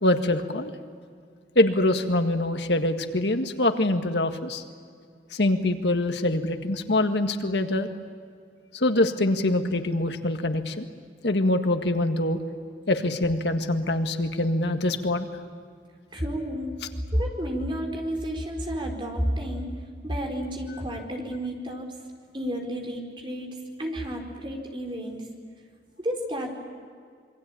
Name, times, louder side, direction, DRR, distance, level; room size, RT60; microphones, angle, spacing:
voice 1, 0.0-0.7 1.6-4.6 5.3-7.9 8.7-10.9 11.2-12.4 12.9-15.3, left 1 dB, 80° left, 7 dB, 1.8 m, -24 dB
voice 2, 16.1-16.7 17.1-19.7 20.0-21.9 22.3-25.3 26.0-26.5, equal, 30° right, 2 dB, 4.4 m, -31 dB
27.0 x 23.5 x 8.6 m, 2.1 s
head